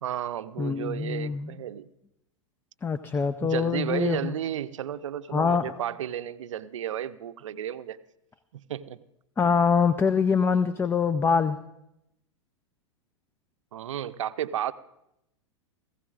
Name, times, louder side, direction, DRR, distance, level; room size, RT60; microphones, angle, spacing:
voice 1, 0.0-1.9 3.4-8.0 8.5-9.0 13.7-14.7, right 10 dB, 75° right, 13 dB, 0.6 m, -33 dB
voice 2, 0.6-1.5 2.8-4.3 5.3-5.7 9.4-11.6, left 6 dB, 15° left, 13 dB, 0.4 m, -24 dB
18.5 x 15.5 x 2.5 m, 0.85 s
hypercardioid pair, 105°, 16 cm